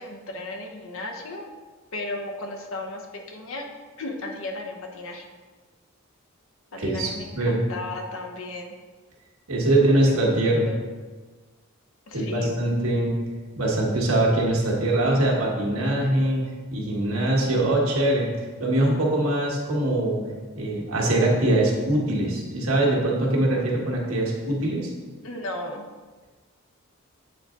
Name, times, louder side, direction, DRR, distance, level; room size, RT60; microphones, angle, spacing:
voice 1, 0.0-1.5 1.9-3.7 4.0-5.3 6.7-8.7 9.5-10.1 10.7-10.8 12.1-12.6 25.2-25.9, left 2 dB, 70° left, 3 dB, 0.8 m, -35 dB
voice 2, 6.8-7.1 7.3-7.6 9.5-10.7 12.1-13.2 13.6-16.4 16.7-18.3 18.6-20.2 20.5-24.9, right 1 dB, 85° right, -2 dB, 1.4 m, -22 dB
7.7 x 4.0 x 3.7 m, 1.4 s
head